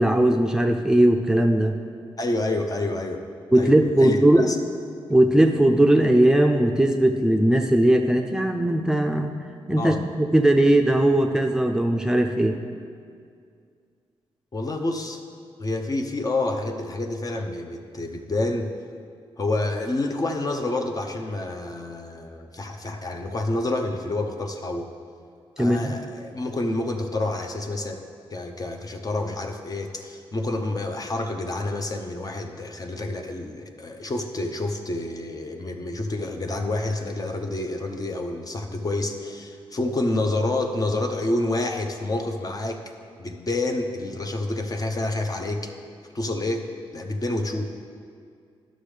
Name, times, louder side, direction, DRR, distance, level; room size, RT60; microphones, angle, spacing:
voice 1, 0.0-1.7 3.5-4.5 5.1-9.3 9.7-12.6 25.6-25.9, right 1 dB, 5° right, 3 dB, 0.5 m, -19 dB
voice 2, 2.2-3.2 3.6-4.6 9.8-10.0 14.5-15.2 15.6-18.7 19.4-24.9 25.6-28.0 28.3-42.9 43.2-45.7 46.1-47.6, left 2 dB, 40° left, 4 dB, 0.8 m, -28 dB
11.5 x 6.2 x 3.3 m, 2.2 s
cardioid pair, 65°, 10 cm